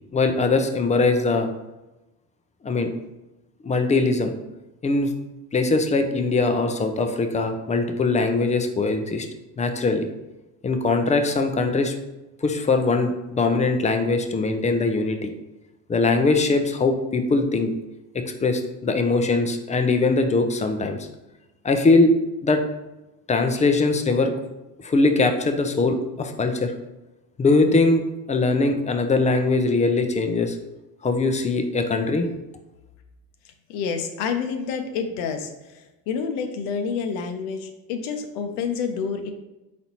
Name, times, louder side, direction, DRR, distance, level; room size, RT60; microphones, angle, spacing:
voice 1, 0.1-1.5 2.6-2.9 3.6-4.3 4.8-5.1 5.5-9.3 9.6-10.0 10.6-11.9 12.4-15.3 15.9-17.7 18.1-21.0 21.6-22.1 22.4-22.6 23.3-24.3 24.8-26.7 27.4-28.0 28.3-30.6 31.0-32.3, left 3 dB, 15° left, 6 dB, 0.4 m, -21 dB
voice 2, 33.4-39.3, left 6 dB, 80° left, 5 dB, 0.7 m, -29 dB
4.1 x 4.1 x 2.9 m, 1.0 s
supercardioid pair, 85°, 46 cm